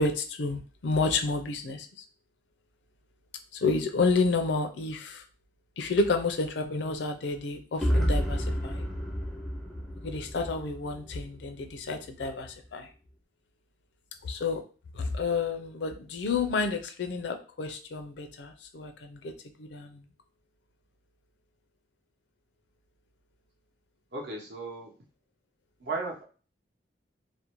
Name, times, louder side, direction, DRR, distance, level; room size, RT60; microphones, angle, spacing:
voice 1, 0.0-1.9 3.5-5.2 5.8-8.9 10.0-12.9 14.2-14.6 14.9-19.3 19.6-20.0, left 3 dB, 70° left, 6 dB, 0.4 m, -30 dB
sound 1, 7.8-11.7, equal, ahead, 0.4 m, -30 dB
voice 2, 24.1-24.9 25.8-26.2, right 3 dB, 70° right, 0 dB, 0.8 m, -35 dB
2.5 x 2.0 x 2.9 m, 0.36 s
head